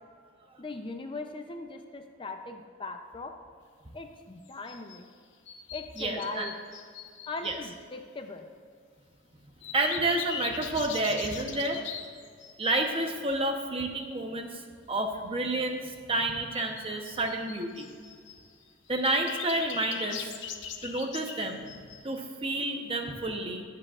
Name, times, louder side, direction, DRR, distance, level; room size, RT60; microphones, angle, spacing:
voice 1, 0.6-3.3 3.9-5.1 5.7-6.5 7.3-8.5, left 3 dB, 25° left, 5 dB, 0.5 m, -39 dB
sound 1, 4.5-5.0 5.5-7.6 9.6-12.8 16.5-18.4 18.9-22.2, left 8 dB, 65° left, 0.8 m, -40 dB
voice 2, 6.0-6.5 7.4-7.6 9.7-11.8 12.6-14.6 14.9-17.9 18.9-20.3 20.8-21.6 22.0-23.6, right 2 dB, 30° right, 4 dB, 0.9 m, -30 dB
21.5 x 7.6 x 2.5 m, 2.1 s
head